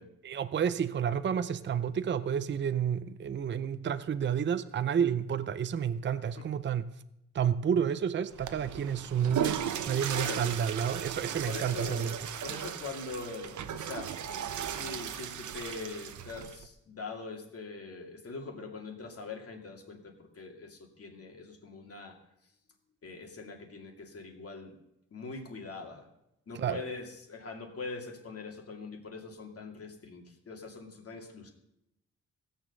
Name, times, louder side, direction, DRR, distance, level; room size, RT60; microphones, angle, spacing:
voice 1, 0.2-6.9 7.3-12.2 26.6-26.8, right 8 dB, 40° right, 12 dB, 0.6 m, -30 dB
Water / Toilet flush, 8.3-16.7, right 9 dB, 75° right, 0.9 m, -36 dB
voice 2, 10.1-10.5 11.4-12.1 12.4-14.2 14.6-22.2 23.0-24.7 25.1-26.1 26.5-31.5, left 4 dB, 50° left, 2 dB, 2.4 m, -42 dB
17.0 x 7.2 x 6.7 m, 0.85 s
wide cardioid pair, 120°, 30 cm